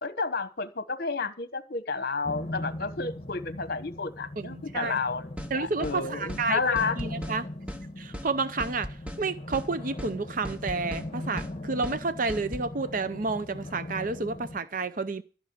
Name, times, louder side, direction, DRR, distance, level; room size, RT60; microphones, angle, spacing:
voice 1, 0.0-7.0, left 4 dB, 50° left, 1.1 m, -31 dB
sound 1, 2.2-14.6, left 1 dB, 30° left, 1.4 m, -39 dB
voice 2, 4.4-5.0 5.5-7.5 8.0-15.2, right 3 dB, 45° right, 0.6 m, -30 dB
sound 2, 5.4-5.5 5.8-6.0 6.3-6.5 6.8-7.4 7.7-7.8 8.1-8.3 8.6-9.2 9.5-9.7 10.0-10.1 10.4-11.1 11.4-11.5 11.8-12.0 12.3-12.7, equal, 5° right, 0.9 m, -38 dB
14.5 x 6.1 x 8.7 m
head